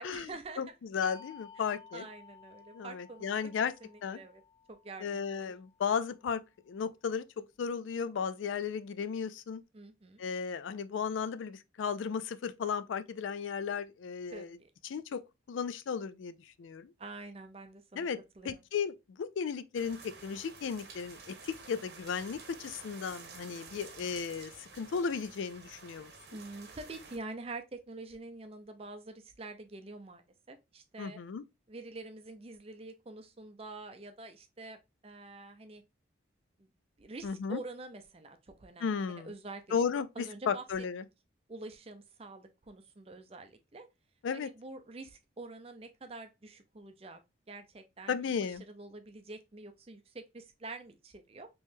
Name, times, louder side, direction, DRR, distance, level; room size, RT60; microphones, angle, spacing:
voice 1, 0.0-0.7 1.6-1.7 1.9-3.3 3.8-4.4 4.7-5.5 9.7-10.2 14.3-14.7 17.0-18.1 18.4-18.6 26.3-31.2 31.7-34.8 35.0-35.8 36.6-36.7 37.0-39.8 40.2-40.6 41.5-43.9 44.3-47.2 47.5-48.2 48.6-51.5, right 2 dB, 30° right, 0.5 m, -46 dB
voice 2, 0.6-2.0 2.7-3.7 4.0-4.2 5.0-6.4 6.7-9.6 10.2-14.6 14.8-15.2 15.5-16.9 17.9-18.2 18.4-26.1 31.0-31.4 37.2-37.6 38.8-39.3 39.7-40.1 40.5-41.0 44.2-44.5 48.1-48.6, left 6 dB, 80° left, 0.3 m, -35 dB
sound 1, 1.0-6.3, left 5 dB, 40° left, 0.9 m, -56 dB
sound 2, 19.7-27.2, right 4 dB, 55° right, 0.9 m, -51 dB
3.6 x 3.0 x 2.6 m
head